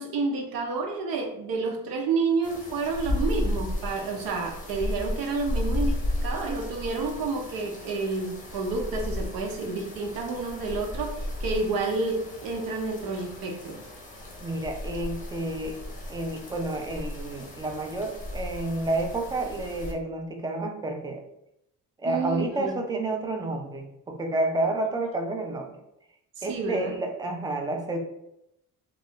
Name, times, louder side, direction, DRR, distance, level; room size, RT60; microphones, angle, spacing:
voice 1, 0.0-6.0 6.2-13.8 22.1-22.8 26.4-27.0, right 3 dB, 80° right, 2 dB, 0.8 m, -29 dB
sound 1, 2.4-19.9, left 1 dB, 20° left, 0.6 m, -34 dB
voice 2, 14.4-15.8 16.1-21.2 22.0-25.7 26.4-28.0, right 2 dB, 10° right, 3 dB, 0.3 m, -30 dB
2.5 x 2.3 x 3.5 m, 0.81 s
cardioid pair, 130°, 35 cm